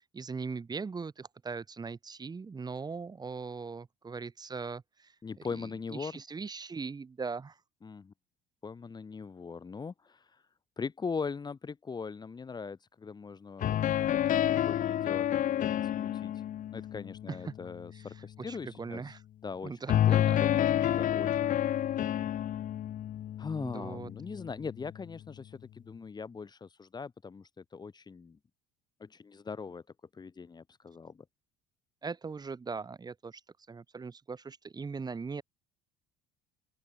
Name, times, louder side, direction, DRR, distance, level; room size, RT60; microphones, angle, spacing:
voice 1, 0.1-5.1 5.5-7.6 17.3-17.6 17.9-18.1 18.4-19.2 19.6-20.4 23.6-24.1 32.0-33.4 33.7-35.4, right 4 dB, 25° right, 6.3 m, -40 dB
voice 2, 5.2-6.2 7.8-8.1 8.6-10.4 10.8-13.8 14.1-16.3 16.7-19.0 19.4-19.7 20.1-21.5 23.4-28.4 29.0-29.8 30.1-31.2, left 5 dB, 25° left, 3.1 m, -41 dB
sound 1, 13.6-17.8 19.9-24.9, left 11 dB, 50° left, 3.5 m, -29 dB
open air
supercardioid pair, 105°, 17 cm